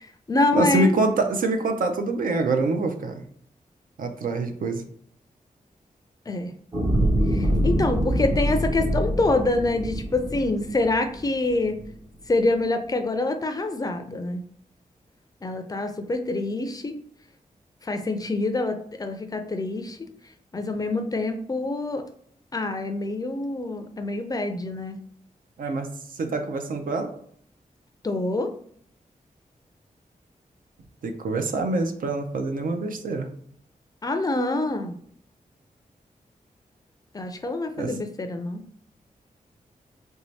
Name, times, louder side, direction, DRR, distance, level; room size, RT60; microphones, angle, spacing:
voice 1, 0.0-0.9 6.3-6.5 7.3-11.8 12.3-14.4 15.4-17.0 17.8-20.0 20.5-22.0 22.5-25.0 28.0-28.5 34.0-34.9 37.1-38.6, left 2 dB, 25° left, 6 dB, 0.4 m, -26 dB
voice 2, 0.5-3.2 4.0-4.8 25.6-27.2 31.0-33.3 37.8-38.0, right 2 dB, 75° right, 6 dB, 0.5 m, -25 dB
sound 1, 6.7-11.2 11.7-11.8, right 1 dB, 35° right, 0.6 m, -25 dB
3.3 x 2.7 x 3.1 m, 0.62 s
wide cardioid pair, 150°, 14 cm